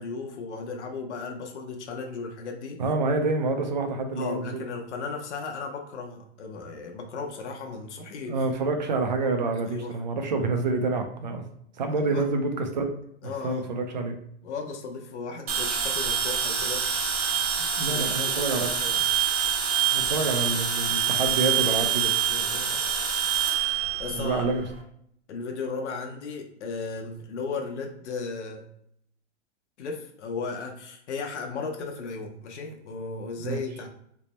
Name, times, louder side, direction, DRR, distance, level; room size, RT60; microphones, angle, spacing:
voice 1, 0.0-2.8 4.2-8.5 9.6-9.9 12.0-12.3 13.2-13.7 14.4-16.8 17.8-18.4 22.3-22.8 24.0-24.5 25.3-28.6 29.8-33.9, left 4 dB, 75° left, 1 dB, 0.8 m, -35 dB
voice 2, 2.8-4.6 8.3-11.4 11.8-12.9 13.2-14.1 17.8-19.0 19.9-22.1 24.1-24.7 33.4-33.6, right 3 dB, 40° right, 5 dB, 0.4 m, -27 dB
sound 1, 15.5-24.7, right 8 dB, 60° right, 0.8 m, -26 dB
3.3 x 2.0 x 4.0 m, 0.71 s
supercardioid pair, 175°, 35 cm